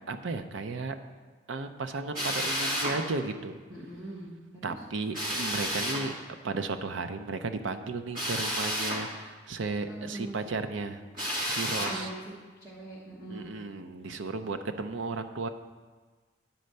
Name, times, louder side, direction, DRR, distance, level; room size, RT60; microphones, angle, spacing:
voice 1, 0.1-1.0 1.5-3.6 4.6-6.1 6.4-11.0 11.5-12.1 13.3-15.5, right 3 dB, 70° right, 8 dB, 0.5 m, -34 dB
Drill, 2.1-3.0 5.1-6.0 8.1-9.0 11.1-12.0, equal, 40° right, 1.8 m, -31 dB
voice 2, 3.7-4.8 9.9-10.4 11.7-12.2 12.6-13.5, right 2 dB, 15° right, -7 dB, 1.1 m, -41 dB
9.3 x 4.3 x 6.6 m, 1.4 s
head